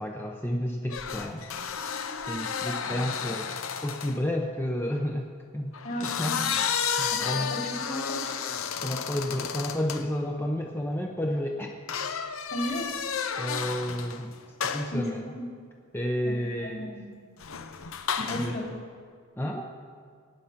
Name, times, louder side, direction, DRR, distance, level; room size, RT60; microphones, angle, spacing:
voice 1, 0.0-1.5 2.3-3.5 3.8-5.7 6.0-6.5 7.0-7.5 8.8-11.8 13.4-14.3 14.6-15.2 15.9-16.8 18.2-18.6 19.4-19.7, equal, 10° left, 1 dB, 0.7 m, -31 dB
sound 1, 0.9-4.2 5.7-10.1 11.9-14.2 14.6-15.0 17.4-18.6, left 6 dB, 80° left, 0.8 m, -32 dB
voice 2, 5.8-6.5 7.1-8.2 12.5-12.9 14.9-15.4 16.2-17.1 18.2-18.6, left 1 dB, 50° left, -1 dB, 3.0 m, -35 dB
17.5 x 9.6 x 5.8 m, 2.1 s
head